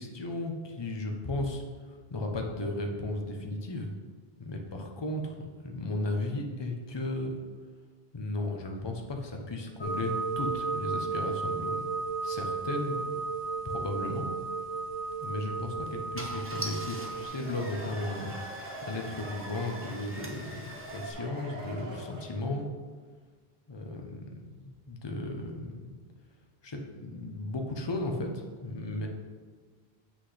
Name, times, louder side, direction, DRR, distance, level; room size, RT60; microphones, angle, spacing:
voice 1, 0.0-1.6 1.9-3.9 4.4-5.4 5.6-7.4 8.1-11.8 12.2-13.0 13.6-14.3 15.2-18.3 18.8-22.7 23.7-25.8 26.6-29.1, left 2 dB, 30° left, 2 dB, 0.8 m, -35 dB
sound 1, 9.8-17.3, right 4 dB, 70° left, 1.9 m, -34 dB
Car / Engine starting, 15.0-15.3 15.9-16.0 16.1-21.1, right 1 dB, 15° right, 0.8 m, -43 dB
sound 2, 17.3-22.5, right 1 dB, 60° right, 2.0 m, -44 dB
8.1 x 6.1 x 3.3 m, 1.5 s
omnidirectional pair, 1.1 m